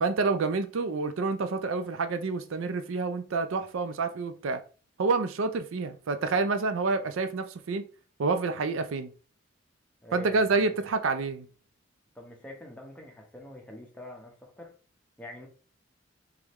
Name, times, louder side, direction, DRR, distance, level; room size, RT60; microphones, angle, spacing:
voice 1, 0.0-4.6 5.0-7.8 8.2-9.1 10.1-11.5, right 4 dB, 85° right, 0.5 m, -28 dB
voice 2, 10.0-10.8 12.1-14.7 15.2-15.5, equal, 5° left, 0.9 m, -45 dB
3.6 x 3.2 x 3.0 m
head